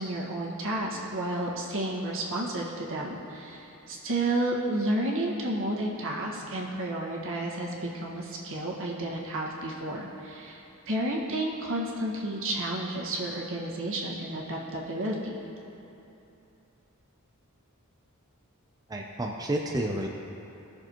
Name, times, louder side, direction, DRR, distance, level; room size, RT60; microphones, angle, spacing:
voice 1, 0.0-15.4, right 1 dB, 65° right, -3 dB, 1.6 m, -31 dB
voice 2, 18.9-20.1, right 1 dB, 15° right, 0 dB, 0.5 m, -30 dB
19.0 x 6.5 x 3.0 m, 2.9 s
head